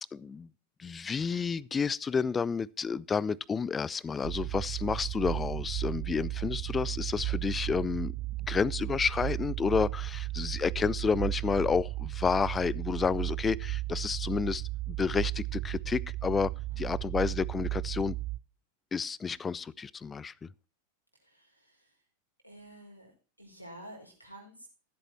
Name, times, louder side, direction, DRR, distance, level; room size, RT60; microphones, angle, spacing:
voice 1, 0.1-0.5 0.8-8.1 8.5-16.5 16.8-18.2 18.9-20.3, left 5 dB, 15° left, 0.5 m, -30 dB
sound 1, 4.2-18.4, right 18 dB, 40° right, 0.6 m, -35 dB
voice 2, 10.4-10.7 16.7-17.0 21.1-22.1 22.4-24.7, right 1 dB, 90° left, 5.0 m, -51 dB
15.0 x 8.2 x 4.3 m
figure-of-eight pair, 90°, 0 cm